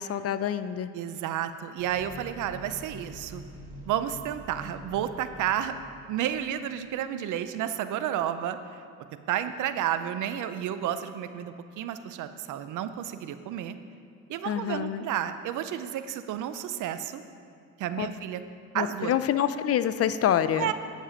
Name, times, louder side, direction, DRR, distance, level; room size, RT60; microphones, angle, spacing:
voice 1, 0.0-0.9 14.4-15.0 18.0-18.1 18.7-20.7, left 10 dB, 50° left, 13 dB, 0.5 m, -26 dB
voice 2, 0.9-3.4 3.8-5.8 6.1-8.8 9.3-13.8 14.3-17.2 17.8-18.4 18.7-19.1 20.6-20.7, right 10 dB, 80° right, 11 dB, 0.6 m, -31 dB
sound 1, 1.8-7.0, equal, 50° right, 2.0 m, -46 dB
10.0 x 7.3 x 5.0 m, 2.4 s
cardioid pair, 90°, 30 cm